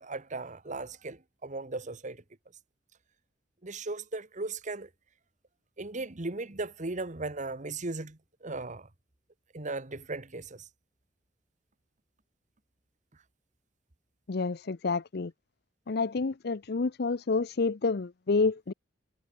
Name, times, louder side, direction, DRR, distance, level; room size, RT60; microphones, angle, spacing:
voice 1, 0.0-2.2 3.6-4.9 5.8-8.9 9.5-10.7, right 3 dB, 45° right, 1.5 m, -37 dB
voice 2, 14.3-15.3 15.9-18.7, left 4 dB, 60° left, 0.6 m, -29 dB
head